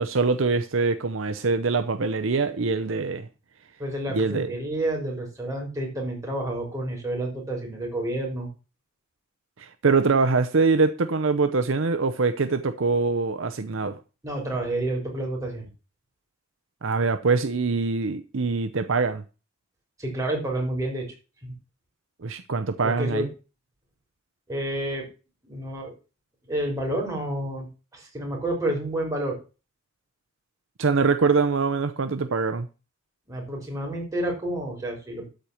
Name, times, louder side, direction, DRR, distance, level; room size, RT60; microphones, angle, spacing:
voice 1, 0.0-3.3 4.1-4.5 9.6-14.0 16.8-19.2 22.2-23.3 30.8-32.7, right 4 dB, 65° right, 0.7 m, -23 dB
voice 2, 3.8-8.5 14.2-15.7 20.0-21.1 21.4-21.5 22.8-23.2 24.5-25.0 25.4-25.9 26.5-27.7 27.9-29.4 33.3-35.3, right 1 dB, 15° right, 4.1 m, -29 dB
13.0 x 4.5 x 7.0 m
head